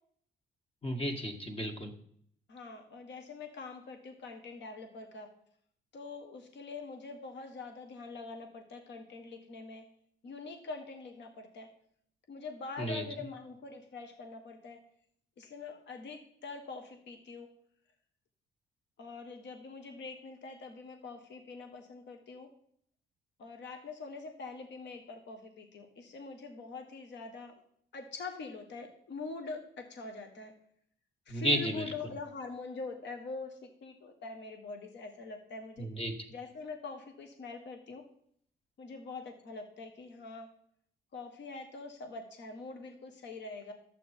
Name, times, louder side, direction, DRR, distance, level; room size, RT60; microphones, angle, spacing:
voice 1, 0.8-1.9 12.8-13.0 31.3-31.7 35.8-36.1, equal, 30° left, 5 dB, 2.0 m, -32 dB
voice 2, 2.5-5.3 5.9-9.8 10.2-11.7 12.3-14.8 15.4-17.5 19.0-22.5 23.4-27.5 27.9-30.5 31.3-35.9 36.3-38.0 38.8-40.5 41.1-43.7, left 4 dB, 65° left, 5 dB, 1.4 m, -44 dB
11.5 x 8.1 x 4.5 m, 0.66 s
cardioid pair, 90°, 20 cm